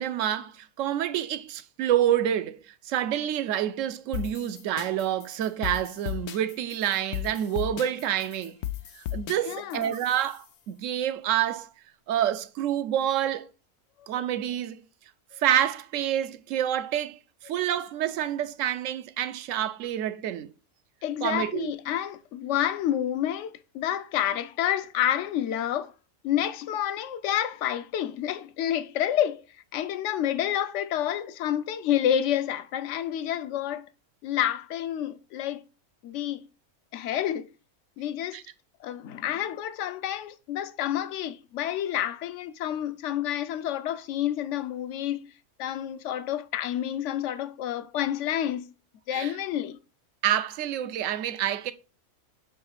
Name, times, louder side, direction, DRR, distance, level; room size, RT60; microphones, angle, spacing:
voice 1, 0.0-8.6 8.9-11.7 12.1-13.5 14.1-14.8 15.4-17.2 17.4-20.5 21.2-21.7 38.3-38.4 49.1-49.3 50.2-51.7, right 11 dB, 70° right, 0.9 m, -28 dB
sound 1, 4.1-10.5, left 12 dB, 80° left, 1.2 m, -36 dB
voice 2, 9.4-9.9 14.0-14.1 21.0-25.9 26.2-33.9 34.2-35.6 36.0-36.5 36.9-37.5 38.0-38.4 38.8-45.3 45.6-48.7 49.1-49.8, left 11 dB, 65° left, 0.8 m, -29 dB
6.8 x 3.1 x 5.6 m
omnidirectional pair, 1.6 m